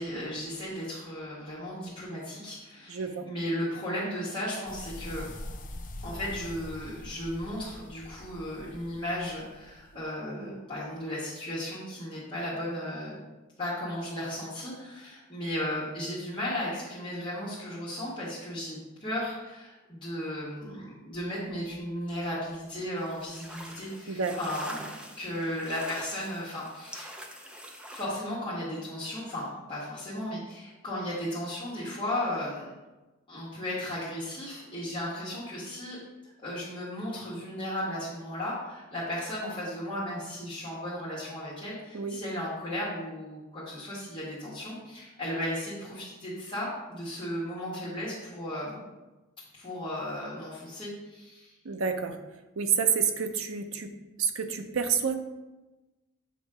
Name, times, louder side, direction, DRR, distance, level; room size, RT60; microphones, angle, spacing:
voice 1, 0.0-5.3 6.0-13.2 13.6-24.8 25.2-27.2 27.9-32.7 33.3-36.0 36.2-48.8 49.5-51.5, left 1 dB, 25° left, -10 dB, 1.7 m, -35 dB
voice 2, 2.9-3.3 24.1-24.4 41.9-42.2 51.6-52.2 52.6-55.1, right 6 dB, 80° right, 6 dB, 0.6 m, -29 dB
sound 1, 4.7-10.0, left 1 dB, 40° left, 0.6 m, -43 dB
sound 2, 23.0-28.1, equal, 5° right, 0.5 m, -44 dB
7.9 x 3.1 x 4.9 m, 1.1 s
head